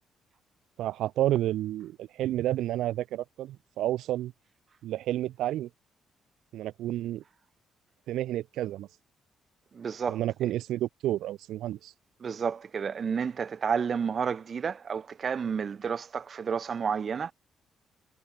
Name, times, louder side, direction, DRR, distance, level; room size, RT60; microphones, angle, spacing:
voice 1, 0.8-4.3 4.8-5.7 6.5-7.2 8.1-8.9 10.1-11.9, right 13 dB, 80° right, 2.5 m, -30 dB
voice 2, 9.7-10.5 12.2-17.3, right 6 dB, 30° right, 1.9 m, -31 dB
cardioid pair, 175°, 0 cm